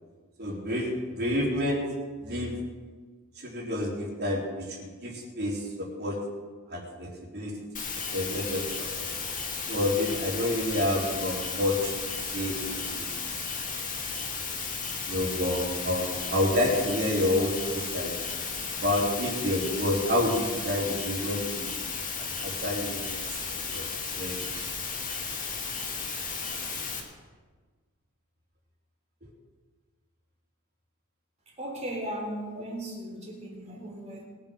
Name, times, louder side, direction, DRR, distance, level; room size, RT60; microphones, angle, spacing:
voice 1, 0.4-1.8 2.2-2.6 3.4-6.2 6.7-7.5 8.1-9.1 9.7-11.9 12.3-13.1 15.1-18.1 18.7-21.7 22.2-23.8 24.2-24.4, left 1 dB, 50° right, -2 dB, 3.8 m, -29 dB
sound 1, 7.7-27.0, left 5 dB, 35° left, 2.2 m, -34 dB
voice 2, 31.5-34.2, right 1 dB, 30° right, -1 dB, 3.4 m, -37 dB
21.5 x 7.3 x 6.3 m, 1.4 s
head